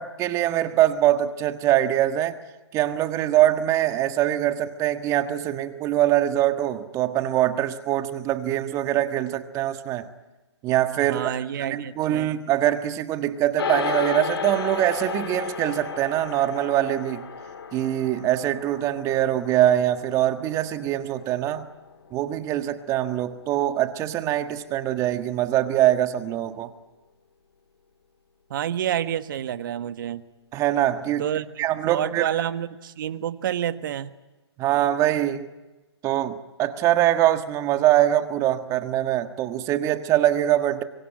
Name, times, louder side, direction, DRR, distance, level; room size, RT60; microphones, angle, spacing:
voice 1, 0.0-2.4 2.7-10.1 10.6-11.3 11.6-17.2 17.7-21.7 22.1-26.7 30.5-31.3 31.6-32.3 34.6-35.5 36.0-40.8, right 13 dB, 20° right, 9 dB, 1.5 m, -23 dB
voice 2, 11.0-12.3 28.5-30.2 31.2-34.1, right 10 dB, 50° right, 11 dB, 1.4 m, -29 dB
sound 1, 13.6-23.1, left 5 dB, 65° left, 4.0 m, -33 dB
26.5 x 23.5 x 9.0 m, 1.1 s
hypercardioid pair, 135°, 14 cm